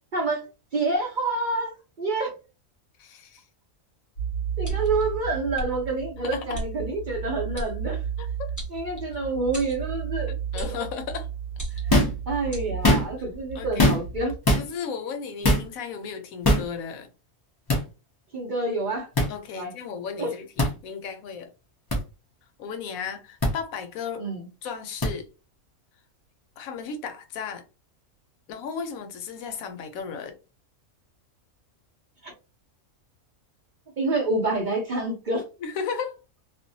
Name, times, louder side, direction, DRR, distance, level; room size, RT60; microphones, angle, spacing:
voice 1, 0.1-0.4 0.7-1.7 2.0-2.3 4.6-8.0 8.7-10.8 11.7-11.8 12.3-14.3 18.3-19.1 19.5-19.7 20.2-20.3 24.2-24.5 32.2-32.3 34.0-35.4, right 2 dB, 55° right, 0.5 m, -27 dB
voice 2, 3.0-3.4 6.2-6.4 8.2-8.5 10.3-11.3 13.6-13.9 14.5-17.1 19.3-21.5 22.6-24.2 24.6-25.3 26.6-27.6 28.5-30.4 35.6-36.2, left 6 dB, 85° left, 1.1 m, -35 dB
sound 1, 4.1-14.4, right 7 dB, 55° left, 1.0 m, -33 dB
sound 2, 4.6-5.0 5.5-5.7 6.5-6.7 7.5-7.7 8.6-9.2 9.5-9.8 10.6-10.8 11.5-12.0 12.5-12.7, equal, 15° left, 1.0 m, -36 dB
sound 3, 11.9-12.2 12.7-13.3 13.8-14.2 14.5-14.7 15.4-15.7 16.4-16.7 17.7-17.8 19.2-19.3 20.6-20.7 21.9-22.0 23.4-23.5 25.0-25.1, left 1 dB, 35° left, 0.3 m, -20 dB
2.6 x 2.1 x 2.6 m
omnidirectional pair, 1.4 m